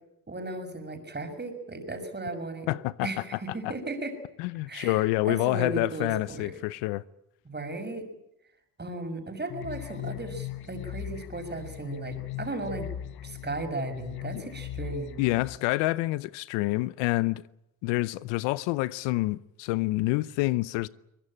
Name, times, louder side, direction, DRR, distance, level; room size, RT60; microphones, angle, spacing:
voice 1, 0.3-2.7 3.0-4.1 4.7-6.6 7.4-8.1 8.8-12.9 13.2-15.2, right 2 dB, 25° right, 6.2 m, -36 dB
voice 2, 2.7-3.1 3.6-3.7 4.4-7.0 14.3-14.4 15.2-17.4 17.8-20.9, left 19 dB, 85° left, 0.8 m, -27 dB
sound 1, 9.5-15.6, left 12 dB, 60° left, 1.4 m, -39 dB
23.0 x 20.0 x 8.8 m
supercardioid pair, 65°, 42 cm